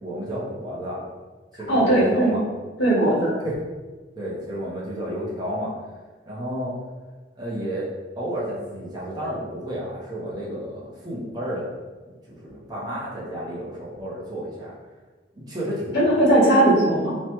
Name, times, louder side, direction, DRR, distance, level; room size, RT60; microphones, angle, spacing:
voice 1, 0.0-1.1 1.5-2.4 3.4-3.5 4.2-5.7 6.3-6.8 7.4-11.7 12.3-14.7 15.4-16.2, equal, 20° right, -7 dB, 0.7 m, -31 dB
voice 2, 1.7-2.4 2.8-3.3 15.9-17.2, right 1 dB, 80° left, -7 dB, 1.1 m, -18 dB
3.1 x 2.2 x 2.8 m, 1.3 s
head